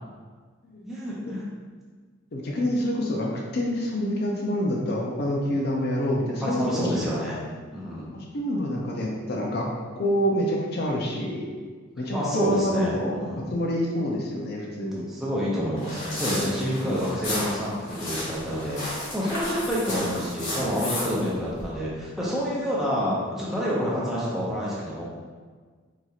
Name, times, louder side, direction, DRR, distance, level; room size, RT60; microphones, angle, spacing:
voice 1, 0.9-1.4 6.4-7.4 7.7-8.1 12.1-13.5 15.1-25.0, equal, ahead, -8 dB, 0.7 m, -28 dB
voice 2, 2.3-6.9 8.3-9.6 10.0-11.5 12.0-15.1, equal, 50° left, -1 dB, 0.5 m, -27 dB
sound 1, 15.8-21.6, left 1 dB, 70° left, 1.4 m, -33 dB
4.0 x 2.9 x 2.4 m, 1.5 s
head